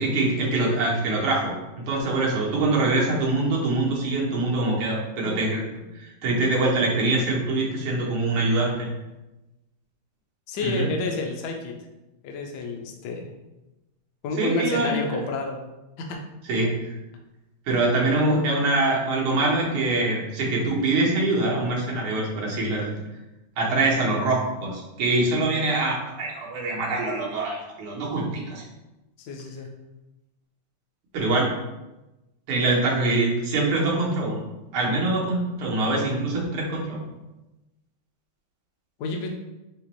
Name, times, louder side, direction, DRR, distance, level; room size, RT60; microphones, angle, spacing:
voice 1, 0.0-8.9 10.6-10.9 14.4-15.2 16.5-16.9 17.7-22.9 23.6-28.6 31.1-31.5 32.5-34.4 34.7-37.0, right 2 dB, 90° right, -3 dB, 1.9 m, -24 dB
voice 2, 10.5-11.8 12.2-13.3 14.2-15.6 16.0-16.2 29.2-29.7 39.0-39.3, left 3 dB, 65° left, 2 dB, 1.1 m, -29 dB
5.1 x 2.9 x 3.0 m, 1.0 s
omnidirectional pair, 2.3 m